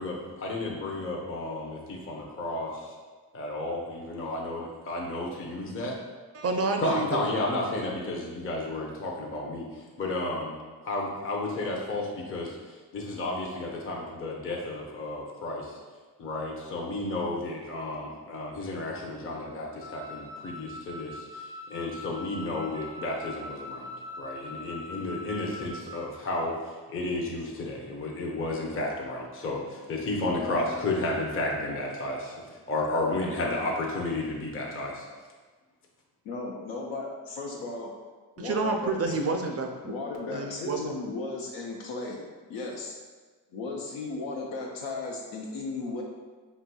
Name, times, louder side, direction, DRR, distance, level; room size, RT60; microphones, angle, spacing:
voice 1, 0.0-2.9 3.3-5.9 6.8-12.6 12.9-15.8 16.2-23.9 24.2-26.6 26.9-32.3 32.7-35.0, left 2 dB, 30° left, -1 dB, 0.6 m, -32 dB
voice 2, 6.3-7.3 38.4-39.9 40.3-40.8, right 3 dB, 35° right, 4 dB, 0.4 m, -29 dB
Wind instrument woodwind instrument, 19.8-26.0, left 2 dB, 55° left, 1.2 m, -42 dB
voice 3, 30.4-30.7 33.4-33.7 36.3-37.9 38.4-39.2 39.8-42.2 42.5-43.0 43.5-46.0, left 3 dB, 85° left, -2 dB, 0.5 m, -35 dB
4.0 x 2.7 x 2.2 m, 1.4 s
supercardioid pair, 55°, 43 cm